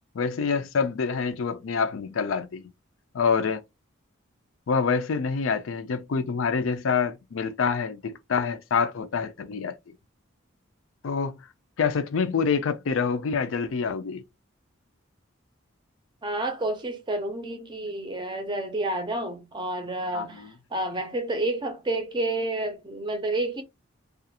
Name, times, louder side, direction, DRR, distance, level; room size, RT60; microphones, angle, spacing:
voice 1, 0.1-2.6 3.1-3.6 4.7-9.8 11.0-11.3 11.8-14.2 20.1-20.3, left 5 dB, 75° left, 0.4 m, -26 dB
voice 2, 16.2-23.6, right 2 dB, 20° right, 0.6 m, -30 dB
2.4 x 2.4 x 2.8 m
head